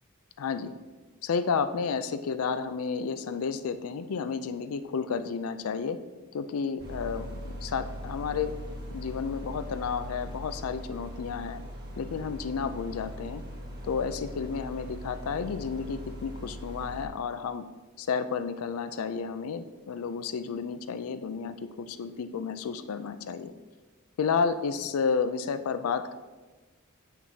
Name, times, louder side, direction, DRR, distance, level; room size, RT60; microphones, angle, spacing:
voice 1, 0.4-0.7 1.2-6.0 6.3-8.5 8.9-11.6 12.0-13.4 13.8-17.6 18.0-23.5 24.2-26.2, left 5 dB, 85° left, 11 dB, 0.4 m, -31 dB
sound 1, 6.8-17.1, equal, 50° right, 1.3 m, -40 dB
7.6 x 5.9 x 2.7 m, 1.3 s
head